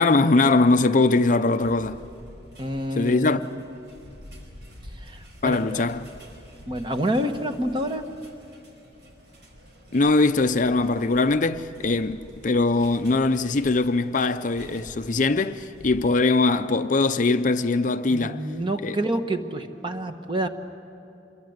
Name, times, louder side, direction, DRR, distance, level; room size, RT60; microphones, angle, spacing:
voice 1, 0.0-2.0 3.0-3.4 5.4-6.0 9.9-18.4 18.8-19.0, left 3 dB, 45° left, 0.6 m, -21 dB
sound 1, 1.6-16.1, equal, 70° right, 4.8 m, -48 dB
voice 2, 2.6-3.6 5.0-5.8 6.7-8.0 18.1-20.5, right 1 dB, 25° right, 1.2 m, -28 dB
26.5 x 23.0 x 8.1 m
head